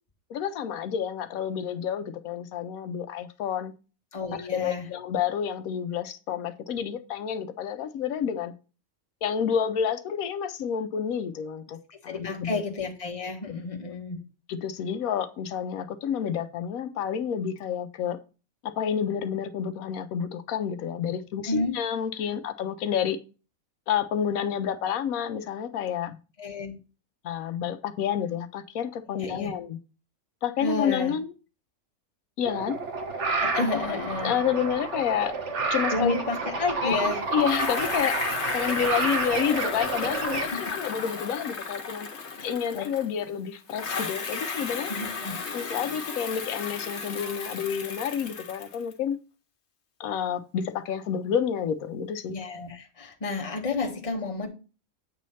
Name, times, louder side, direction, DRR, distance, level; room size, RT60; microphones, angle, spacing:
voice 1, 0.3-3.7 4.4-8.5 9.2-11.8 12.0-12.6 13.5-13.6 13.8-13.9 14.5-18.2 18.6-23.2 23.9-26.2 27.2-29.8 30.4-31.3 32.4-32.8 33.6-35.4 35.7-36.2 36.8-38.2 38.5-42.1 42.4-44.9 45.5-49.2 50.0-52.4, left 8 dB, 85° left, 1.1 m, -29 dB
voice 2, 4.1-4.9 12.1-14.2 21.5-21.8 26.4-26.7 29.2-29.5 30.6-31.1 33.4-34.3 35.9-37.2 40.5-40.6 42.7-42.8 44.9-45.4 52.3-54.5, left 3 dB, 25° left, 1.2 m, -31 dB
sound 1, 32.4-40.5, right 3 dB, 60° right, 1.4 m, -30 dB
Bicycle, 37.4-43.3 43.7-48.9, left 4 dB, 55° left, 1.3 m, -34 dB
8.3 x 3.1 x 5.4 m
omnidirectional pair, 1.4 m